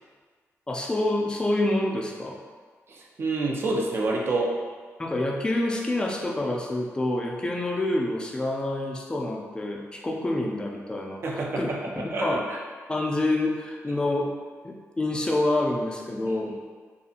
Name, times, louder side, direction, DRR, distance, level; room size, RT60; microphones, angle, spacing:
voice 1, 0.7-2.4 5.0-11.7 12.2-12.5 12.9-14.3 14.6-16.5, left 1 dB, 15° left, 0 dB, 0.4 m, -27 dB
voice 2, 2.9-4.6 11.2-12.6 16.3-16.5, right 2 dB, 50° right, -2 dB, 0.5 m, -28 dB
2.7 x 2.4 x 2.4 m, 1.5 s
cardioid pair, 95°, 5 cm